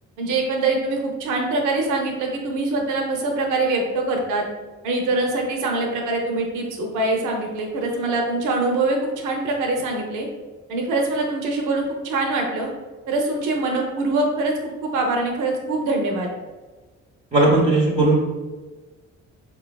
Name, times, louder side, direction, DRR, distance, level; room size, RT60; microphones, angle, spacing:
voice 1, 0.2-4.5 4.8-10.3 10.7-12.7 13.1-14.5 14.8-16.3, right 2 dB, 85° right, 1 dB, 0.6 m, -23 dB
voice 2, 17.3-18.2, right 2 dB, 25° right, -2 dB, 0.6 m, -17 dB
4.5 x 2.2 x 2.2 m, 1.3 s
cardioid pair, 90°, 30 cm